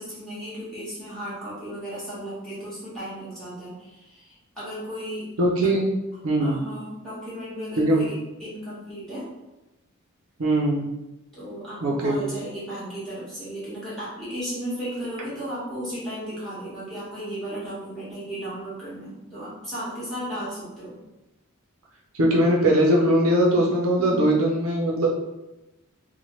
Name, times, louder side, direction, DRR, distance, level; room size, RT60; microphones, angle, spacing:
voice 1, 0.0-5.3 5.6-5.7 6.4-9.2 11.3-20.9 24.0-24.3, equal, ahead, -11 dB, 1.3 m, -35 dB
voice 2, 5.4-5.8 6.2-6.6 7.8-8.1 10.4-10.9 11.8-12.2 22.2-25.1, right 1 dB, 75° right, -2 dB, 0.6 m, -20 dB
2.9 x 2.1 x 3.0 m, 1.0 s
head